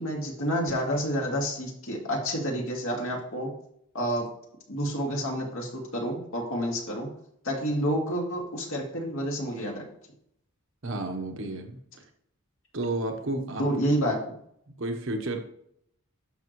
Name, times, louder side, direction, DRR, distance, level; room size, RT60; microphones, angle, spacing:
voice 1, 0.0-3.5 3.9-4.3 4.7-7.1 7.4-9.8 13.6-14.3, equal, 65° left, 0 dB, 2.4 m, -29 dB
voice 2, 10.8-11.8 12.7-13.7 14.8-15.4, right 2 dB, 60° right, 5 dB, 1.3 m, -31 dB
11.0 x 6.7 x 3.2 m, 0.71 s
head